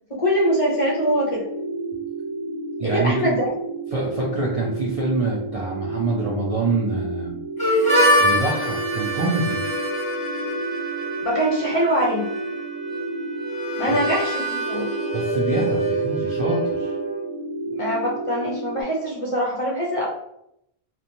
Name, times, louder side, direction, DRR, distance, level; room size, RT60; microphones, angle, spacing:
voice 1, 0.1-1.5 2.8-3.4 11.2-12.3 13.8-14.9 17.7-20.1, equal, 40° left, -4 dB, 0.5 m, -23 dB
sound 1, 0.5-18.8, right 2 dB, 85° right, 0.9 m, -31 dB
voice 2, 2.8-3.3 3.9-7.4 8.2-9.6 13.9-14.0 15.1-16.9, right 3 dB, 55° right, -4 dB, 0.4 m, -25 dB
Harmonica, 7.6-17.2, equal, 5° left, 1.2 m, -25 dB
2.9 x 2.1 x 2.5 m, 0.77 s
omnidirectional pair, 1.0 m